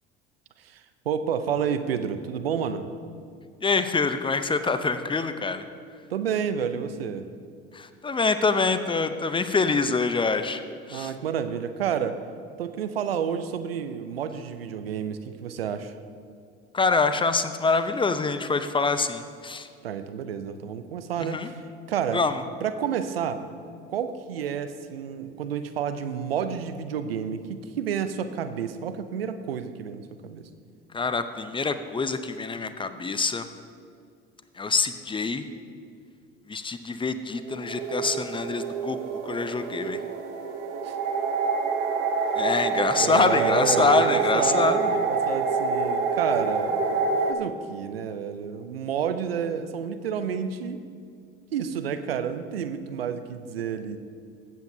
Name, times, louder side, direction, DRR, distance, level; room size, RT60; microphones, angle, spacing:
voice 1, 0.6-2.9 6.1-7.3 10.9-12.2 12.6-15.9 19.8-21.6 21.9-22.2 22.6-23.4 23.9-30.5 40.8-41.0 42.9-50.8 51.5-54.0, right 7 dB, 90° right, 11 dB, 0.5 m, -30 dB
voice 2, 3.6-5.7 7.7-10.6 10.9-11.1 16.7-19.7 21.2-21.5 22.1-22.4 30.9-33.5 34.5-35.5 36.5-40.0 42.4-44.9, left 4 dB, 15° left, 10 dB, 0.6 m, -25 dB
sound 1, 37.3-47.3, right 4 dB, 75° right, 0.9 m, -27 dB
14.5 x 8.1 x 2.7 m, 2.2 s
hypercardioid pair, 70°, 29 cm